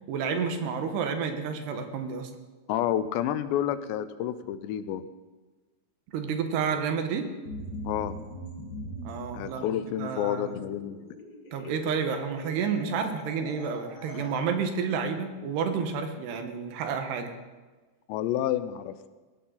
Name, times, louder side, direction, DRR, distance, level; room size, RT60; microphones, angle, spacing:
voice 1, 0.1-2.3 6.1-7.3 9.0-9.6 10.0-10.6 11.5-17.3, right 6 dB, 75° right, 6 dB, 3.3 m, -30 dB
voice 2, 2.7-5.0 7.8-8.2 9.3-11.1 18.1-19.1, left 11 dB, 90° left, 12 dB, 3.0 m, -29 dB
sound 1, 7.4-14.3, equal, 55° left, 1.0 m, -42 dB
20.5 x 16.5 x 4.0 m, 1.3 s
omnidirectional pair, 4.9 m